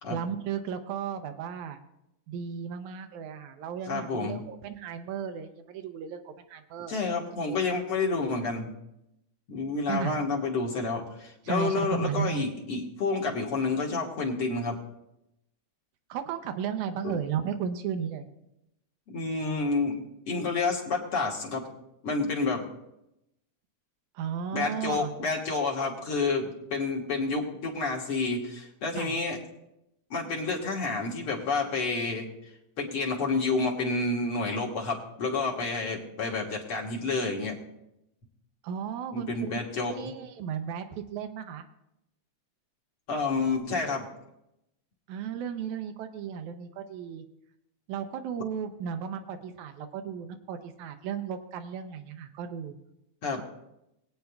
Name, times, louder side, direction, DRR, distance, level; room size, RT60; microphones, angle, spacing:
voice 1, 0.1-1.8 2.3-6.9 9.9-10.2 11.5-12.5 16.1-18.3 24.2-25.1 28.9-29.2 38.6-39.6 39.9-41.6 45.1-47.2 47.9-52.8 53.3-53.4, right 7 dB, 85° right, 7 dB, 2.2 m, -34 dB
voice 2, 3.9-4.4 6.9-8.7 9.5-14.8 17.0-17.2 19.1-20.0 20.3-21.7 22.0-22.7 24.5-29.4 30.1-32.3 32.8-37.5 39.1-40.1 43.1-44.1 53.2-53.4, left 3 dB, 55° left, -1 dB, 2.2 m, -29 dB
21.5 x 9.0 x 2.3 m, 0.86 s
omnidirectional pair, 3.3 m